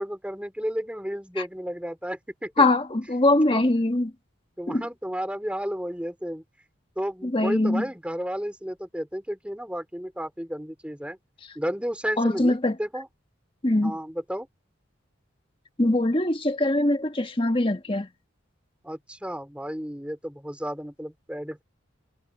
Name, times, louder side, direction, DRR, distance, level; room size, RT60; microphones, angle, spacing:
voice 1, 0.0-2.6 3.5-3.6 4.6-6.4 7.0-11.2 11.5-13.1 13.8-14.5 18.8-21.6, equal, 5° right, 4.6 m, -32 dB
voice 2, 2.6-4.1 4.7-4.8 7.2-7.8 12.2-12.8 13.6-13.9 15.8-18.1, left 2 dB, 25° left, 1.5 m, -22 dB
head